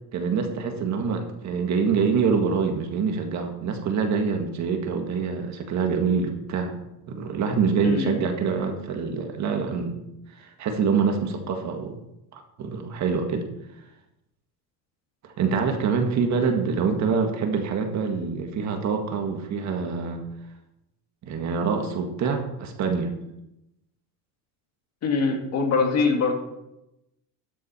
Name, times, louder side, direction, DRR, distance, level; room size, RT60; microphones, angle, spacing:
voice 1, 0.1-6.8 7.1-10.0 10.4-12.0 12.3-13.5 15.4-20.2 21.2-23.1, right 5 dB, 45° right, 4 dB, 1.7 m, -25 dB
voice 2, 7.8-8.2 25.0-26.4, left 4 dB, 45° left, 3 dB, 2.1 m, -23 dB
13.0 x 7.7 x 4.3 m, 0.87 s
cardioid pair, 140°, 38 cm